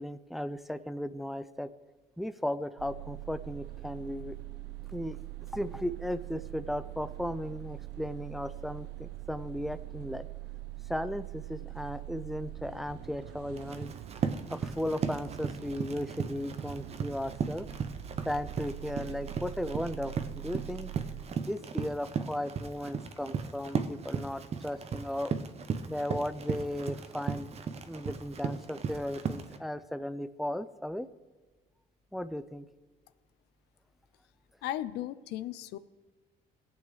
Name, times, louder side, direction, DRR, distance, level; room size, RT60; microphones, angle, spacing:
voice 1, 0.0-1.7 2.2-4.4 4.9-5.2 5.5-10.3 10.9-13.9 14.5-17.7 18.3-20.9 21.4-25.3 25.9-27.6 27.8-31.1 32.1-32.7, left 1 dB, ahead, 13 dB, 0.4 m, -36 dB
sound 1, 2.8-21.2, right 15 dB, 85° right, 0.6 m, -43 dB
Run, 13.6-29.6, right 6 dB, 40° right, 0.7 m, -36 dB
voice 2, 34.6-35.8, left 13 dB, 80° left, 15 dB, 0.5 m, -36 dB
17.5 x 8.4 x 3.2 m, 1.3 s
cardioid pair, 110°, 17 cm